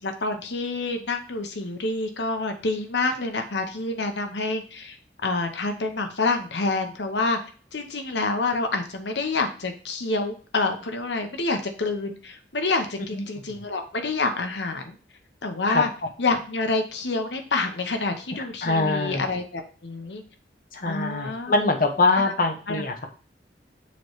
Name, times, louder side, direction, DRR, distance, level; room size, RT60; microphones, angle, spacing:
voice 1, 0.0-5.0 5.2-7.4 7.7-15.0 15.4-15.9 16.2-20.2 20.8-21.5 22.1-22.2 22.7-22.8, left 3 dB, 80° left, 6 dB, 0.9 m, -27 dB
voice 2, 18.6-19.2 20.7-23.1, left 3 dB, 50° left, 5 dB, 0.8 m, -23 dB
6.9 x 3.2 x 4.8 m, 0.40 s
head